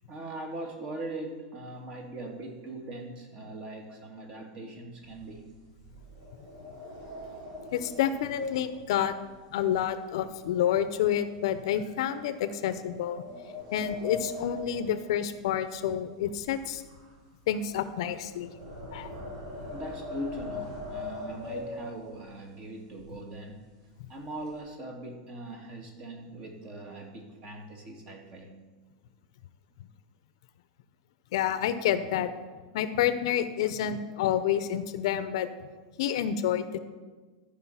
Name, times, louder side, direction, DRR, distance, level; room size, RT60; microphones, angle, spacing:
voice 1, 0.0-5.5 13.3-13.4 18.5-18.9 19.7-23.6 24.1-28.6, right 1 dB, 30° right, 3 dB, 1.7 m, -41 dB
sound 1, 5.0-10.4 10.7-11.0 11.5-11.7 12.5-15.8 16.1-22.3 22.9-23.0 23.3-23.6 23.9-24.6, left 2 dB, 55° right, 3.8 m, -41 dB
voice 2, 7.7-9.1 9.5-13.2 13.7-16.8 17.5-18.5 18.9-19.1 31.3-32.3 32.7-35.5 36.0-36.8, left 10 dB, 65° left, 12 dB, 0.7 m, -28 dB
13.0 x 5.1 x 5.6 m, 1.3 s
supercardioid pair, 145°, 3 cm